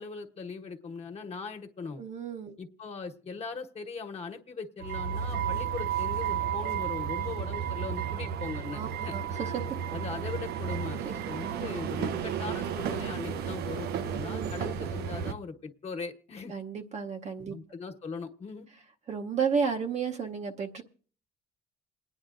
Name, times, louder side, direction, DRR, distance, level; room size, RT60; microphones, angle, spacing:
voice 1, 0.0-2.0 2.6-9.2 9.9-11.0 11.3-16.5 17.5-18.7, left 4 dB, 40° left, 4 dB, 1.2 m, -40 dB
voice 2, 2.0-2.6 8.7-9.7 11.0-11.1 14.1-14.6 16.5-17.6 19.1-20.8, right 6 dB, 40° right, 3 dB, 0.8 m, -32 dB
sound 1, 4.8-15.3, right 8 dB, 70° right, 0.6 m, -33 dB
28.5 x 9.8 x 2.5 m, 0.43 s
cardioid pair, 110°, 17 cm